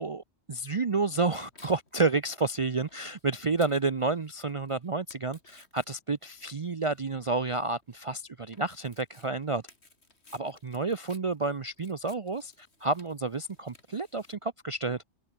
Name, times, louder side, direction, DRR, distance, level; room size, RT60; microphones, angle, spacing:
voice 1, 0.0-9.6 10.3-15.0, right 3 dB, 35° right, 0.6 m, -30 dB
Tearing, 0.8-14.3, left 3 dB, 65° left, 3.8 m, -59 dB
omnidirectional pair, 1.2 m